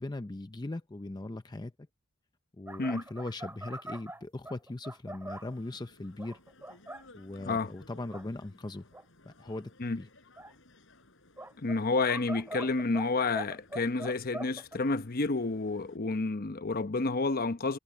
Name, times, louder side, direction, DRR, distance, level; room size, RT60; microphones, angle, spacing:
voice 1, 0.0-1.7 2.6-6.4 7.1-8.9 9.3-9.7 10.0-10.1, left 2 dB, 20° left, 0.5 m, -39 dB
sound 1, 2.7-5.5 6.2-7.0 7.5-7.6 8.0-8.3 8.9-9.0 10.4-10.5 11.4-13.1 13.4-14.8, right 1 dB, 10° right, 2.4 m, -43 dB
sound 2, 5.3-16.0, left 2 dB, 65° left, 5.6 m, -60 dB
voice 2, 7.4-7.7 9.8-10.0 11.6-17.8, left 3 dB, 45° left, 0.9 m, -30 dB
head